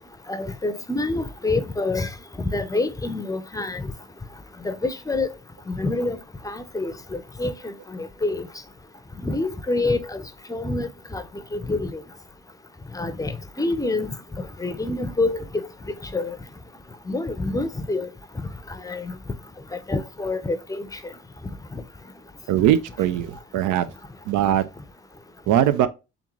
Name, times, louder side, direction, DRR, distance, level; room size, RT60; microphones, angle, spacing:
voice 1, 0.3-2.1 2.4-3.9 4.6-5.3 5.7-6.2 6.4-8.5 9.2-10.2 10.5-11.2 11.5-12.0 12.9-14.1 14.6-15.7 16.1-16.4 17.1-18.1 18.8-19.2 19.9-20.9 21.7-21.8, left 2 dB, 10° left, 0.6 m, -27 dB
voice 2, 22.5-23.8 24.3-24.6 25.5-25.9, right 11 dB, 80° right, 0.5 m, -20 dB
3.7 x 3.6 x 3.0 m
cardioid pair, 90°, 30 cm